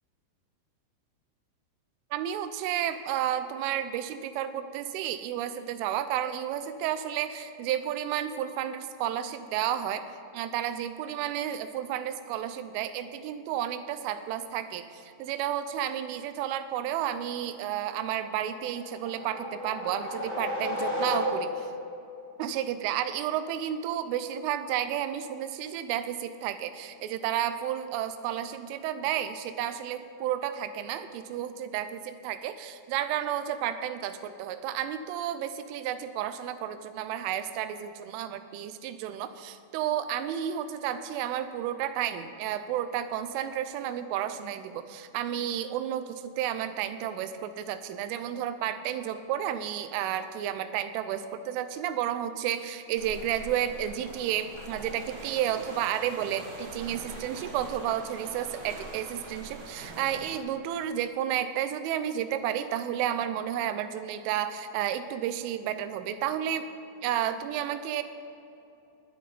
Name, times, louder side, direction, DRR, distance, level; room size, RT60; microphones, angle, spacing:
voice 1, 2.1-10.1 10.3-21.7 22.4-66.7 67.0-68.0, right 10 dB, 85° right, 11 dB, 3.2 m, -32 dB
sound 1, 18.5-21.8, left 1 dB, 30° left, 4.2 m, -33 dB
sound 2, 53.0-60.4, right 2 dB, 55° right, 2.8 m, -44 dB
19.0 x 10.0 x 4.0 m, 2.7 s
omnidirectional pair, 5.6 m